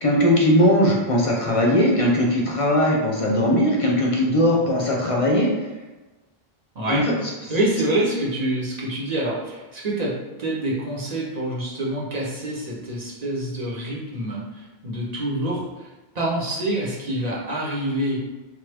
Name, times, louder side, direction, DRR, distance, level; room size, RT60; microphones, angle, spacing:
voice 1, 0.0-5.5 6.9-7.0, equal, 40° left, -2 dB, 0.5 m, -19 dB
voice 2, 7.5-10.1 10.4-15.9 16.1-18.2, right 1 dB, 45° right, -5 dB, 0.8 m, -26 dB
3.1 x 2.3 x 3.3 m, 1.2 s
omnidirectional pair, 1.0 m